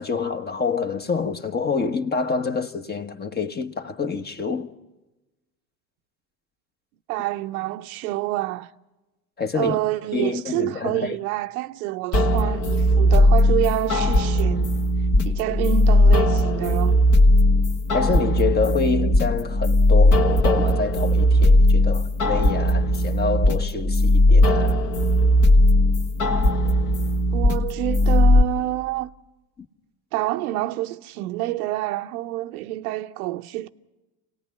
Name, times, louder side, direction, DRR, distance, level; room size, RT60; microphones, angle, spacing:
voice 1, 0.0-4.7 9.4-9.8 10.1-11.2 17.9-24.8 29.6-29.7, left 5 dB, 20° left, 1.3 m, -27 dB
voice 2, 7.1-8.7 9.5-14.8 15.2-17.0 27.3-29.1 30.1-33.7, right 16 dB, 80° right, 0.8 m, -27 dB
sound 1, 12.1-28.4, left 1 dB, 45° left, 1.8 m, -18 dB
28.5 x 18.5 x 5.6 m
hypercardioid pair, 90°, 43 cm